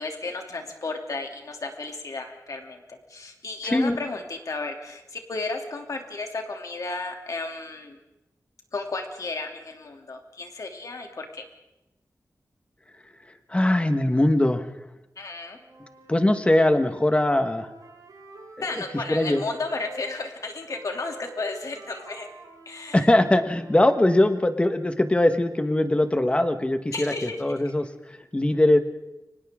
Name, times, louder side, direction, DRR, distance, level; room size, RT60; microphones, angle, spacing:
voice 1, 0.0-8.0 8.7-11.4 15.2-15.6 18.6-22.3 22.7-23.0 26.9-27.6, left 3 dB, 60° left, 3 dB, 2.9 m, -33 dB
voice 2, 13.5-14.7 16.1-17.7 19.1-19.4 22.9-28.8, left 1 dB, 20° left, 8 dB, 1.4 m, -21 dB
Wind instrument woodwind instrument, 15.5-20.0 20.6-24.3, right 2 dB, 80° right, 6.3 m, -47 dB
30.0 x 25.0 x 3.7 m, 0.95 s
wide cardioid pair, 120°, 6 cm